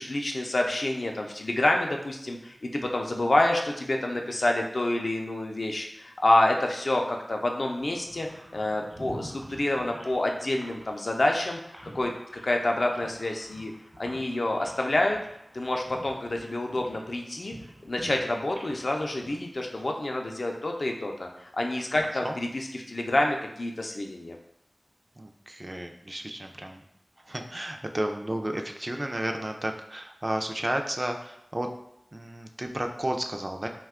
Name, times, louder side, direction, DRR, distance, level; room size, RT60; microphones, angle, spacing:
voice 1, 0.0-8.3 8.5-11.6 11.9-12.1 12.4-13.7 14.0-15.2 15.5-17.5 17.8-24.4, left 1 dB, 70° left, 2 dB, 0.4 m, -27 dB
David O vastness audio, 7.8-20.1, right 1 dB, 60° right, 0.9 m, -48 dB
voice 2, 25.2-26.8 27.3-31.7 32.1-33.7, right 1 dB, 35° right, 4 dB, 0.3 m, -32 dB
2.7 x 2.2 x 3.5 m, 0.79 s
wide cardioid pair, 55°, 0 cm